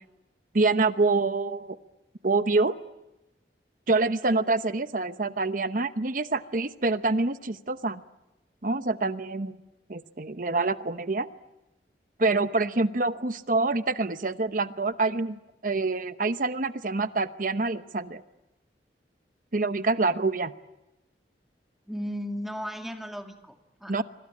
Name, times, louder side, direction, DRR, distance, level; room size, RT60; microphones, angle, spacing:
voice 1, 0.5-1.8 2.2-2.8 3.9-8.0 8.6-9.6 9.9-11.3 12.2-18.2 19.5-20.5 23.9-24.0, right 3 dB, 50° right, 11 dB, 0.9 m, -26 dB
voice 2, 21.9-24.0, equal, ahead, 4 dB, 2.4 m, -36 dB
26.0 x 26.0 x 8.6 m, 0.99 s
head